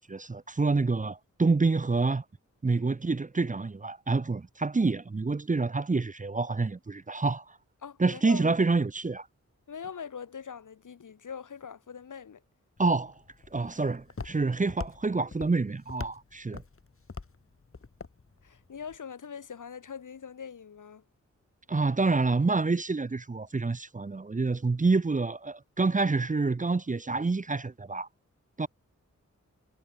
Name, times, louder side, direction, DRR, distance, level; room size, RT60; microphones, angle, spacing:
voice 1, 0.0-2.2 2.6-7.6 8.0-9.3 12.8-13.1 13.5-16.6 21.7-28.1 28.6-28.7, right 3 dB, 25° right, 0.8 m, -27 dB
voice 2, 7.8-8.4 9.7-12.4 18.4-21.0, left 7 dB, 85° left, 2.8 m, -42 dB
Walk footsteps, 12.8-19.0, left 4 dB, 45° left, 5.2 m, -44 dB
wide cardioid pair, 85°, 30 cm